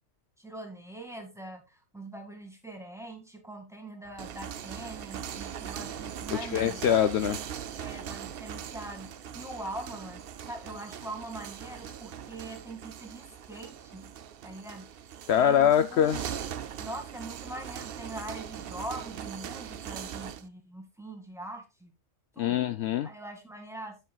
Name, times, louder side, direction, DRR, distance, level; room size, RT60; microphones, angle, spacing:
voice 1, 0.4-6.8 7.7-14.1 14.4-14.9 15.3-16.2 16.8-21.9 22.4-22.6 23.0-24.0, right 1 dB, ahead, 3 dB, 2.0 m, -42 dB
sound 1, 4.0-20.5, right 9 dB, 60° right, 0.7 m, -40 dB
voice 2, 6.3-7.4 15.3-16.2 22.4-23.1, left 9 dB, 70° left, 11 dB, 0.8 m, -24 dB
10.5 x 7.6 x 2.3 m, 0.27 s
omnidirectional pair, 1.2 m